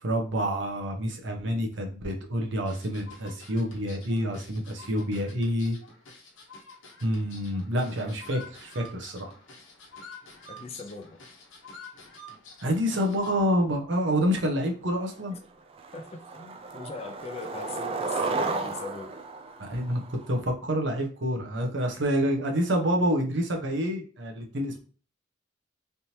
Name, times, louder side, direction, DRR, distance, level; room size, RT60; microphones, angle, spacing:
voice 1, 0.0-5.8 7.0-9.3 12.6-15.4 19.6-24.8, equal, 70° right, 0.8 m, -28 dB
sound 1, 2.6-13.4, left 2 dB, 90° left, 1.0 m, -49 dB
voice 2, 10.5-11.2 15.9-19.2, left 4 dB, 35° left, 0.5 m, -40 dB
Skateboard, 14.7-14.8 15.1-15.5 15.8-20.4, right 3 dB, 30° right, 0.3 m, -33 dB
3.4 x 2.9 x 2.7 m
head